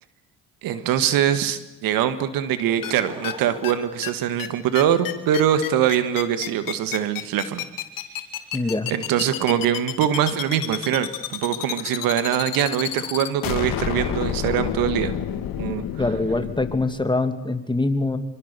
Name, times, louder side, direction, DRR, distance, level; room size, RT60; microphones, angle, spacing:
voice 1, 0.6-7.6 8.9-15.1 15.6-15.8, right 10 dB, 75° right, 12 dB, 1.9 m, -23 dB
Laughter / Crowd, 2.5-5.1 5.8-5.9, right 1 dB, 15° right, 5.0 m, -43 dB
sound 1, 2.8-2.9 3.2-3.3 3.6-3.7 4.0-4.1 4.4-4.5 4.7-16.9, left 11 dB, 75° left, 2.4 m, -29 dB
voice 2, 8.5-8.9 16.0-18.2, left 2 dB, 15° left, 9 dB, 2.6 m, -24 dB
25.5 x 24.5 x 6.9 m, 1.0 s
supercardioid pair, 70°, 34 cm